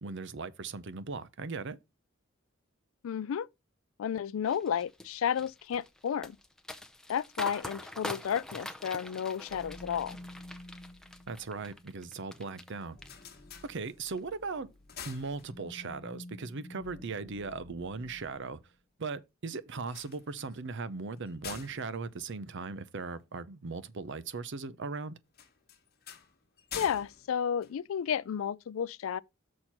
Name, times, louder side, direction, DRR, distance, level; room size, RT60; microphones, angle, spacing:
voice 1, 0.0-1.8 11.3-13.0 13.6-14.7 15.1-18.6 19.0-25.1, right 4 dB, 60° right, 0.7 m, -38 dB
voice 2, 3.0-3.5 4.0-6.4 7.1-10.2 26.7-29.2, left 8 dB, 75° left, 0.3 m, -32 dB
sound 1, 4.5-12.7 13.0-13.7 14.1-14.3, left 1 dB, 5° left, 0.6 m, -44 dB
sound 2, 9.5-18.7, left 1 dB, 30° left, 0.8 m, -51 dB
sound 3, 12.8-14.3 14.7-16.0 19.8-23.2 25.3-28.4, left 7 dB, 50° left, 1.2 m, -48 dB
6.4 x 4.4 x 5.7 m
head